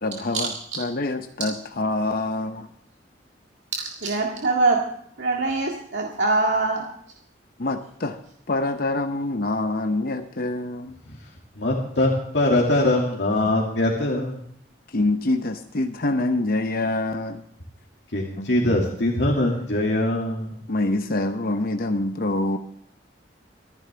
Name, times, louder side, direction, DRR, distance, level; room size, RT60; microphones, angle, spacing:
voice 1, 0.0-2.7 7.6-8.2 8.5-11.0 14.9-17.4 18.4-18.5 20.7-22.6, left 2 dB, 55° left, 7 dB, 0.8 m, -25 dB
voice 2, 3.8-4.8 5.2-6.9, right 3 dB, 85° right, -1 dB, 2.0 m, -23 dB
voice 3, 11.6-14.4 18.1-20.6, left 1 dB, 75° left, -2 dB, 2.3 m, -22 dB
25.0 x 10.5 x 3.4 m, 0.68 s
head